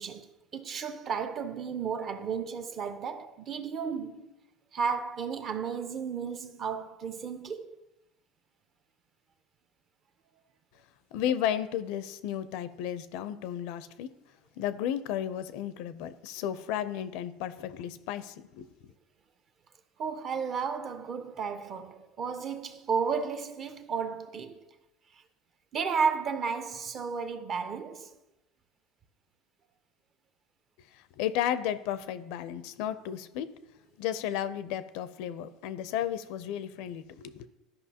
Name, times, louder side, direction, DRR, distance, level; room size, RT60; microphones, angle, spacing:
voice 1, 0.0-4.3 4.7-7.8 20.0-24.7 25.7-28.1, right 6 dB, 40° right, 0.6 m, -33 dB
voice 2, 11.1-14.1 14.6-18.7 31.2-33.5 34.0-37.5, left 10 dB, 75° left, 0.5 m, -33 dB
13.0 x 5.3 x 2.8 m
cardioid pair, 135°, 0 cm